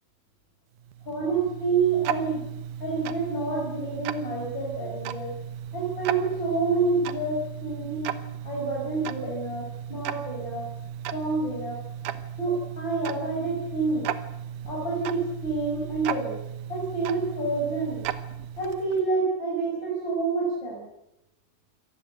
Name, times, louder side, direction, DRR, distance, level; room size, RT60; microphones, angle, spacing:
Tick-tock, 0.8-19.1, right 10 dB, 85° right, 2.7 m, -36 dB
voice 1, 1.1-2.4 2.8-5.4 5.7-8.1 8.4-10.7 11.1-11.8 12.4-14.1 14.7-16.4 16.7-18.1 18.6-20.9, right 3 dB, 35° left, -2 dB, 6.2 m, -28 dB
26.0 x 18.5 x 8.0 m, 0.86 s
omnidirectional pair, 3.5 m